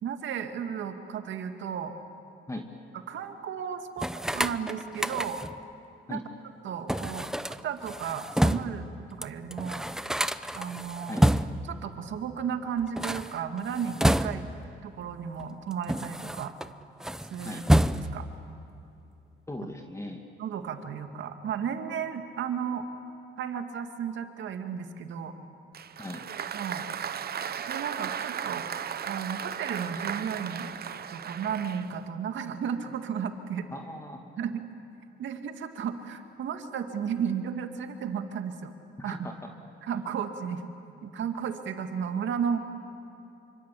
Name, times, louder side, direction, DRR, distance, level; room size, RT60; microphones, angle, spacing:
voice 1, 0.0-1.9 3.1-4.1 4.3-5.4 6.1-6.2 6.6-7.3 7.6-9.8 10.6-11.2 11.7-14.4 14.8-16.5 17.3-17.6 17.9-18.3 20.4-22.8 23.4-25.3 26.5-26.9 27.7-28.6 29.0-30.7 31.1-33.7 34.4-34.7 35.2-38.7 39.0-39.3 39.8-40.7 41.0-42.6, right 7 dB, 70° right, 6 dB, 2.2 m, -34 dB
sound 1, 4.0-5.6 6.9-8.8 9.2-9.3 9.5-11.7 12.8-14.7 15.4-16.7 17.0-18.3, equal, 5° right, 0.8 m, -28 dB
voice 2, 19.5-20.3 26.0-26.2 33.7-34.2 39.0-39.3, left 1 dB, 15° left, 3 dB, 2.3 m, -38 dB
Applause, 25.7-32.1, right 8 dB, 50° right, 1.0 m, -36 dB
27.0 x 25.0 x 8.5 m, 2.8 s
cardioid pair, 90°, 20 cm